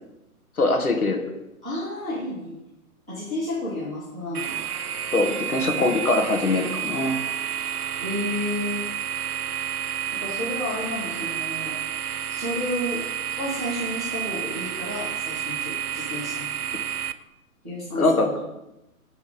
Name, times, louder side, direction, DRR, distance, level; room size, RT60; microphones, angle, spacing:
voice 1, 0.6-1.2 5.1-7.2 17.9-18.3, left 2 dB, 75° left, 4 dB, 1.4 m, -22 dB
voice 2, 1.6-2.6 3.1-4.5 8.0-8.9 10.2-11.7 12.3-13.0 13.4-16.6 17.6-18.3, left 1 dB, 5° right, -14 dB, 0.4 m, -31 dB
sound 1, 4.3-17.1, right 9 dB, 80° right, 0.5 m, -30 dB
8.7 x 3.5 x 5.1 m, 0.91 s
figure-of-eight pair, 125°, 44 cm